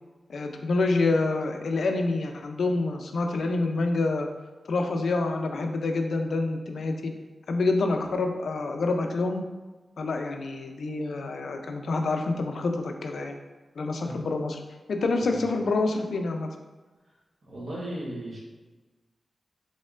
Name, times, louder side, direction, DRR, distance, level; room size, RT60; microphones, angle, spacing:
voice 1, 0.3-4.3 4.7-7.1 7.5-9.4 10.0-13.4 13.8-14.6 14.9-16.5, left 3 dB, 75° left, 4 dB, 0.4 m, -27 dB
voice 2, 17.4-18.4, right 1 dB, 60° right, -6 dB, 1.2 m, -36 dB
4.2 x 3.6 x 2.4 m, 1.2 s
wide cardioid pair, 165°, 0 cm